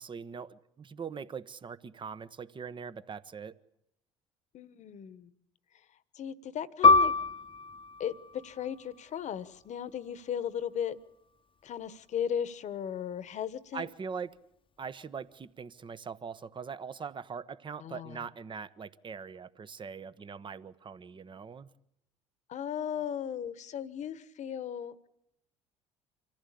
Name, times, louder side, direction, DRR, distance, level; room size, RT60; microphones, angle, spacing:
voice 1, 0.0-3.6 13.7-14.4 14.8-21.7, right 6 dB, 35° right, 1.1 m, -42 dB
voice 2, 4.5-5.3 6.1-7.1 8.0-11.0 11.6-13.9 17.8-18.2 22.5-25.1, left 8 dB, 50° left, 1.3 m, -36 dB
Piano, 6.8-11.9 12.2-12.4 13.1-13.5, left 4 dB, 35° left, 1.0 m, -27 dB
25.5 x 15.0 x 8.5 m
hypercardioid pair, 70°, 15 cm